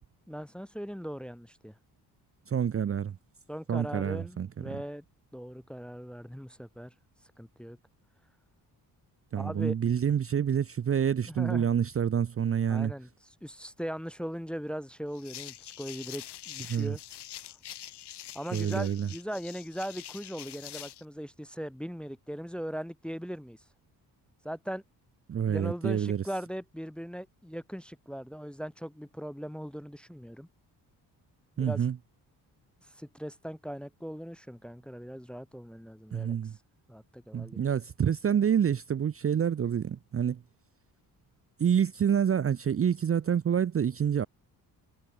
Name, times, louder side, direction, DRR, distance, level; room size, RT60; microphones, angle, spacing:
voice 1, 0.3-1.8 3.5-5.0 5.3-6.9 7.4-7.8 9.3-9.7 11.3-11.7 12.7-13.1 13.4-17.0 18.3-23.6 24.4-24.8 25.5-30.5 31.6-31.8 32.8-36.4 36.9-37.6, equal, ahead, 0.8 m, -39 dB
voice 2, 2.5-3.2 3.7-4.6 9.3-12.9 16.7-17.0 18.5-19.1 25.3-26.2 31.6-32.0 36.1-36.6 37.3-40.4 41.6-44.3, right 8 dB, 35° right, 0.6 m, -27 dB
sound 1, 15.1-21.0, left 12 dB, 70° left, 2.2 m, -45 dB
cardioid pair, 80°, 41 cm